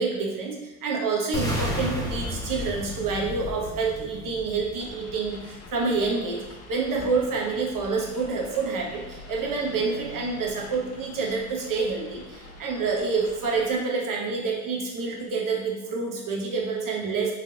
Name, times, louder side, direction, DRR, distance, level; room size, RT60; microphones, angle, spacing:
voice 1, 0.0-6.4 6.7-17.3, right 4 dB, 45° right, 0 dB, 1.1 m, -28 dB
sound 1, 1.3-5.4, equal, 10° left, 1.2 m, -32 dB
sound 2, 4.8-13.7, left 2 dB, 35° left, 0.8 m, -45 dB
3.8 x 3.3 x 2.9 m, 1.0 s
hypercardioid pair, 65°, 45 cm